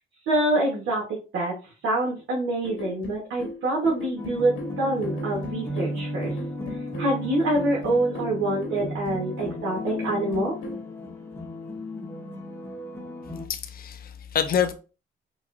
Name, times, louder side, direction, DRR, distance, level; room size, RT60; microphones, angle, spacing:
voice 1, 0.3-1.5 1.8-6.3 7.0-10.5, right 1 dB, 80° right, 1.3 m, -26 dB
sound 1, 2.6-10.9, left 2 dB, 80° left, 1.2 m, -38 dB
sound 2, 4.2-13.5, equal, 10° left, 0.8 m, -35 dB
voice 2, 13.5-14.7, left 8 dB, 50° left, 0.6 m, -26 dB
4.5 x 2.5 x 2.5 m
cardioid pair, 90°, 20 cm